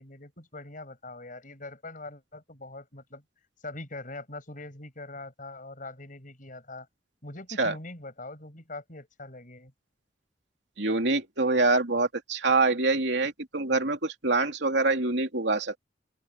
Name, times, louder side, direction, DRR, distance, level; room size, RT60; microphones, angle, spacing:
voice 1, 0.0-3.2 3.6-6.9 7.2-9.7, left 2 dB, 45° left, 7.6 m, -42 dB
voice 2, 10.8-15.8, right 3 dB, 70° right, 3.1 m, -25 dB
open air
head